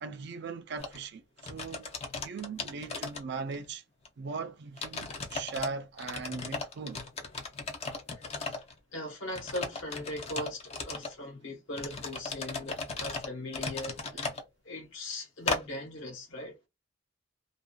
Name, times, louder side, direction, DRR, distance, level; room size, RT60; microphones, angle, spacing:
voice 1, 0.0-3.8 4.2-7.1, right 5 dB, 55° right, 0.4 m, -39 dB
sound 1, 0.8-1.0 1.4-3.7 4.0-4.1 4.8-5.7 6.0-8.7 9.3-11.1 11.7-14.4 15.5-15.6, left 3 dB, 30° left, 0.4 m, -36 dB
voice 2, 8.1-8.6 8.9-14.3 14.6-16.6, left 1 dB, 70° left, 1.1 m, -40 dB
2.5 x 2.2 x 2.2 m
head